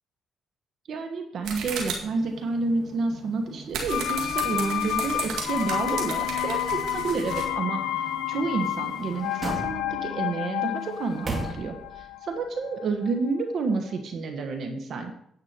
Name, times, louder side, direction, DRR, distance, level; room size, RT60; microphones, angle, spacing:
voice 1, 0.9-7.8 8.3-11.7 12.3-15.1, right 4 dB, 60° right, 5 dB, 1.4 m, -29 dB
sound 1, 1.4-9.3, right 5 dB, 85° right, 2.0 m, -37 dB
sound 2, 3.9-13.6 13.9-14.0, left 12 dB, 90° left, 0.5 m, -30 dB
sound 3, 8.5-10.2 10.8-12.1 12.4-12.5, right 2 dB, 30° right, 2.4 m, -36 dB
9.9 x 8.2 x 4.5 m, 0.72 s
cardioid pair, 90°, 0 cm